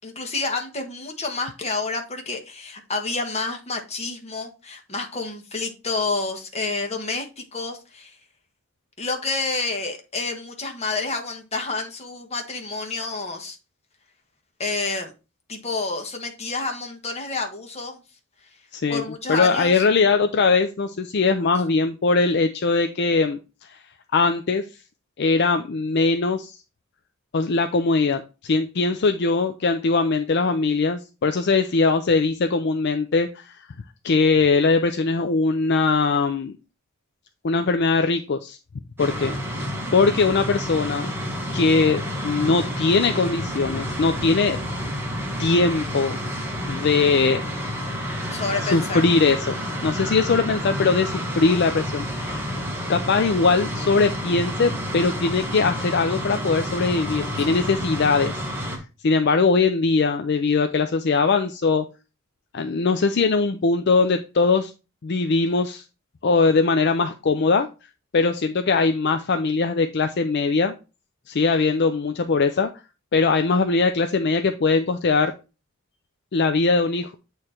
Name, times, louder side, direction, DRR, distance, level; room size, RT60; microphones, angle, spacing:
voice 1, 0.0-8.2 9.0-13.6 14.6-15.1 15.5-18.0 18.9-19.9 48.3-49.0 57.4-57.6, left 3 dB, 30° left, 3 dB, 1.3 m, -29 dB
voice 2, 18.7-19.0 19.3-23.4 23.7-23.8 24.1-24.6 25.2-26.6 27.3-33.5 34.0-36.5 37.4-38.6 39.0-41.1 41.5-44.6 45.4-46.2 46.7-47.4 48.6-52.4 52.9-58.3 58.7-61.8 62.5-64.7 65.0-65.8 66.2-67.7 68.1-70.7 71.3-72.7 73.1-75.3 76.3-77.1, left 4 dB, 55° left, 7 dB, 0.5 m, -21 dB
sound 1, 39.0-58.8, equal, 10° right, 1.4 m, -29 dB
8.6 x 3.2 x 4.3 m, 0.31 s
head